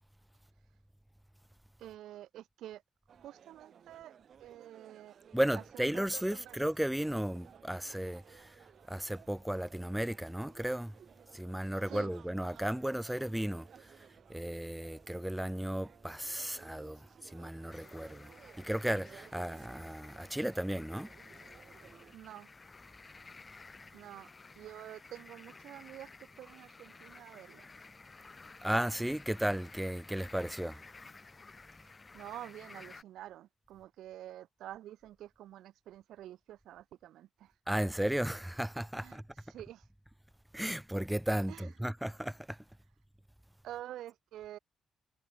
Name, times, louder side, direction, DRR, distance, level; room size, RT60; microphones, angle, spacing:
voice 1, 1.8-2.8 3.2-5.2 5.5-6.6 11.9-12.1 22.1-22.5 23.9-24.3 24.6-27.7 32.1-37.5 39.0-39.2 39.5-39.9 41.5-41.7 43.6-44.6, right 13 dB, 75° right, 0.6 m, -48 dB
sound 1, 3.1-22.1, right 8 dB, 60° right, 1.0 m, -58 dB
voice 2, 5.3-11.0 11.3-21.1 28.6-30.8 37.7-39.2 40.5-42.6, right 1 dB, 5° right, 0.6 m, -35 dB
sound 2, 17.7-33.0, left 3 dB, 35° left, 1.8 m, -54 dB
supercardioid pair, 55°, 0 cm